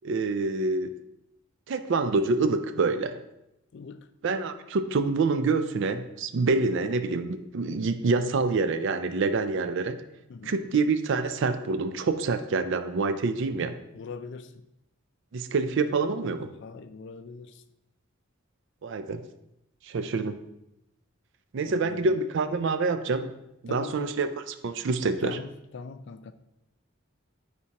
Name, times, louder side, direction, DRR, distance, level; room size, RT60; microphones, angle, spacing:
voice 1, 0.0-0.9 1.7-3.2 4.2-10.0 10.4-13.8 15.3-16.5 18.8-19.2 19.8-20.4 21.5-23.3 23.6-25.4, right 3 dB, 60° right, 10 dB, 0.4 m, -26 dB
voice 2, 3.7-4.1 10.3-10.6 13.9-14.5 16.6-17.6 21.7-22.2 23.7-24.1 25.2-26.3, left 4 dB, 55° left, 11 dB, 0.4 m, -41 dB
9.3 x 4.2 x 2.9 m, 0.85 s
head